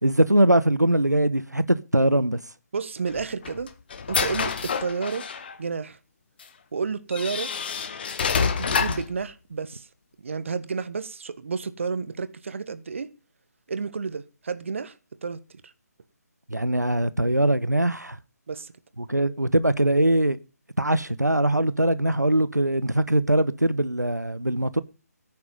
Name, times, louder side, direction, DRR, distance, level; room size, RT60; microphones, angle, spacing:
voice 1, 0.0-2.4 16.5-18.2 19.0-20.4 20.8-24.8, right 1 dB, 90° right, 1.0 m, -22 dB
voice 2, 2.7-3.7 4.1-5.2 5.6-6.0 6.7-7.5 8.4-9.9 10.2-13.1 13.7-14.9 15.2-15.7 18.5-18.7, right 5 dB, 45° right, 1.4 m, -31 dB
sound 1, 3.1-5.5 6.4-6.5 7.1-9.1, left 6 dB, 35° left, 1.6 m, -27 dB
16.0 x 9.5 x 5.4 m
figure-of-eight pair, 145°, 9 cm